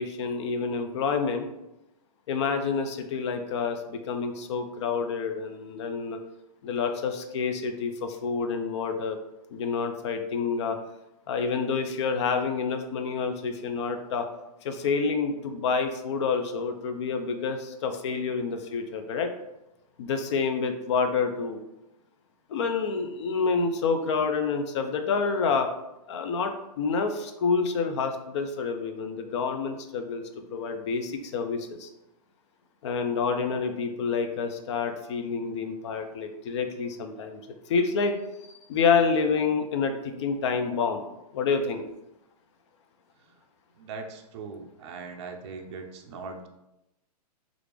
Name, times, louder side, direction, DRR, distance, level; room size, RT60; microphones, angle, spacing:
voice 1, 0.0-1.5 2.3-6.2 6.6-9.2 9.5-10.8 11.3-14.3 14.6-19.3 20.0-21.6 22.5-25.7 26.1-31.9 32.8-37.4 37.7-38.1 38.7-41.0 41.3-41.8, left 5 dB, 45° left, 6 dB, 0.4 m, -28 dB
voice 2, 43.8-46.5, right 4 dB, 45° right, 4 dB, 0.4 m, -40 dB
3.2 x 2.5 x 3.3 m, 0.91 s
hypercardioid pair, 150°, 20 cm